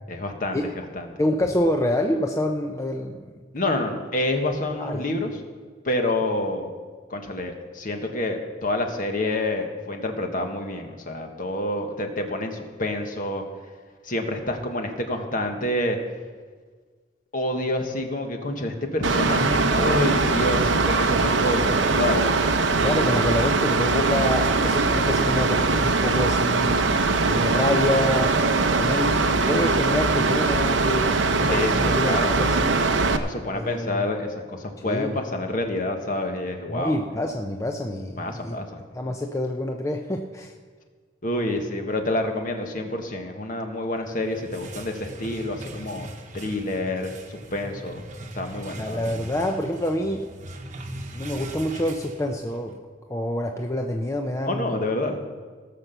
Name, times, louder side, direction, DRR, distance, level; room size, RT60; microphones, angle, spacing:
voice 1, 0.1-0.6 0.9-1.1 3.5-5.4 5.8-6.7 7.1-13.4 14.0-16.0 17.3-22.3 31.5-32.7 33.1-37.0 38.2-38.8 41.2-46.1 46.3-48.0 48.3-49.1 54.4-55.2, left 1 dB, 45° left, 4 dB, 1.4 m, -28 dB
voice 2, 1.2-3.3 4.8-5.1 22.8-28.3 28.7-29.1 29.5-32.8 33.5-34.0 34.8-35.2 36.7-38.5 38.9-40.5 48.8-50.3 51.1-52.7 53.1-54.8, left 1 dB, 15° left, 3 dB, 0.6 m, -27 dB
Mechanical fan, 19.0-33.2, right 3 dB, 80° right, 0.8 m, -21 dB
sound 1, 44.1-52.7, right 1 dB, 40° right, 1.1 m, -40 dB
17.5 x 6.0 x 6.8 m, 1.5 s
head